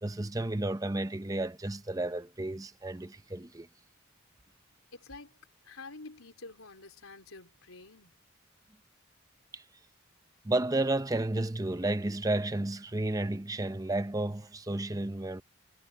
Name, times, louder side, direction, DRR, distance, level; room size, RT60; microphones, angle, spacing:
voice 1, 0.0-3.7 9.5-9.6 10.4-15.4, right 2 dB, 15° right, 0.7 m, -32 dB
voice 2, 4.9-8.1, left 3 dB, 80° left, 4.0 m, -49 dB
head